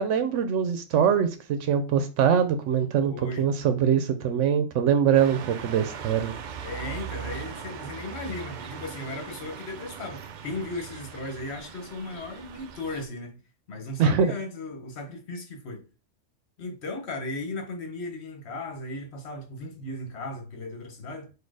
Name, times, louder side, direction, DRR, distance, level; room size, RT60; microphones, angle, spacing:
voice 1, 0.0-6.3 14.0-14.3, right 8 dB, 85° right, 0.9 m, -23 dB
voice 2, 3.0-3.5 6.6-13.4 13.7-15.8 16.6-21.3, left 2 dB, 65° left, 1.2 m, -36 dB
sound 1, 5.1-13.0, right 7 dB, 60° right, 0.5 m, -40 dB
4.2 x 2.6 x 4.7 m
omnidirectional pair, 1.2 m